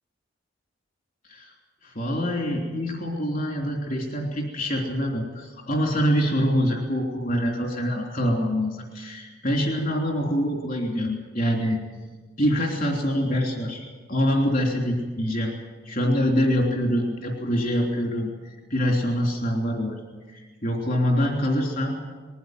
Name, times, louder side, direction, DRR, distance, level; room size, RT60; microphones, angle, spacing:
voice 1, 1.8-11.8 12.4-13.8 14.1-15.5 15.8-18.3 18.7-19.9 20.3-22.0, equal, 50° left, 0 dB, 3.3 m, -25 dB
21.0 x 15.0 x 9.3 m, 1.4 s
head